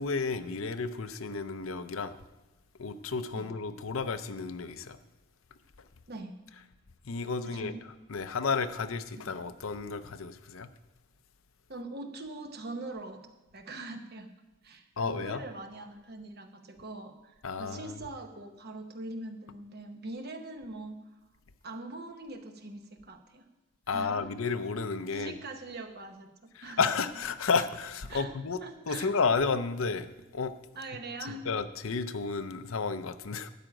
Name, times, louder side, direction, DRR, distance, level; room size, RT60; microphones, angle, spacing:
voice 1, 0.0-2.2 2.8-5.0 7.1-7.7 8.1-10.7 15.0-15.4 17.4-17.9 23.9-25.3 26.6-28.6 28.9-30.1 30.3-30.6 31.3-33.5, left 4 dB, 75° left, 11 dB, 0.6 m, -32 dB
voice 2, 7.4-7.8 9.1-9.3 11.7-13.2 13.5-14.3 14.6-21.0 21.6-23.4 23.9-24.3 25.1-26.3 26.6-26.8 28.1-28.4 28.6-29.1 30.7-31.5, right 2 dB, 50° right, 6 dB, 1.1 m, -42 dB
12.5 x 5.0 x 8.9 m, 1.0 s
head